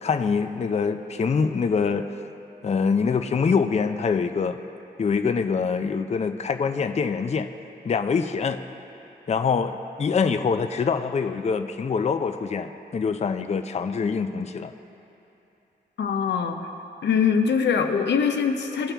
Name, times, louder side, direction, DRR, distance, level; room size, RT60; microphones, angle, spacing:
voice 1, 0.0-2.1 2.6-4.6 5.0-7.5 7.8-8.6 9.3-14.7, left 5 dB, 40° left, 8 dB, 0.4 m, -24 dB
voice 2, 16.0-16.6 17.0-18.9, left 6 dB, 90° left, 5 dB, 0.6 m, -22 dB
17.0 x 5.8 x 3.4 m, 2.9 s
cardioid pair, 60°, 18 cm